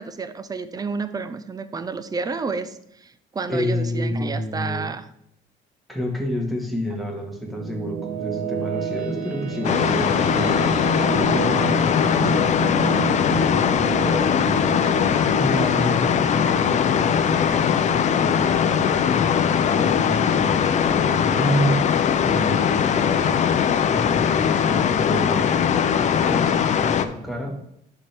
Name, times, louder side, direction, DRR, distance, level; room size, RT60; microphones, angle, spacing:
voice 1, 0.0-5.1, right 4 dB, 20° right, 12 dB, 0.6 m, -30 dB
voice 2, 3.5-4.9 5.9-12.5 12.8-23.4 23.9-25.5 26.3-27.6, equal, ahead, 0 dB, 1.8 m, -29 dB
sound 1, 7.2-18.3, right 7 dB, 50° right, 1.1 m, -31 dB
sound 2, 9.1-15.7, left 6 dB, 65° left, 1.2 m, -40 dB
sound 3, 9.6-27.1, left 8 dB, 45° left, 0.5 m, -20 dB
11.5 x 4.5 x 3.5 m, 0.73 s
cardioid pair, 110°, 17 cm